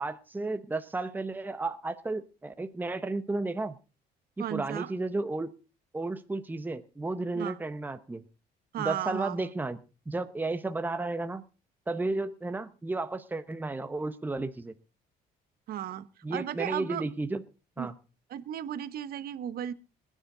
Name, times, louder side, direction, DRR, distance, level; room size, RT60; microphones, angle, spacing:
voice 1, 0.0-3.8 4.5-5.5 5.9-8.2 8.8-9.8 10.1-11.4 11.9-14.7 16.2-17.4 17.8-17.9, right 2 dB, 10° right, 10 dB, 1.0 m, -33 dB
voice 2, 4.4-4.9 7.3-7.6 8.7-9.5 15.7-17.0 17.8-17.9 18.3-19.7, right 11 dB, 65° right, 14 dB, 1.1 m, -35 dB
20.0 x 10.0 x 3.9 m, 0.33 s
cardioid pair, 110°, 17 cm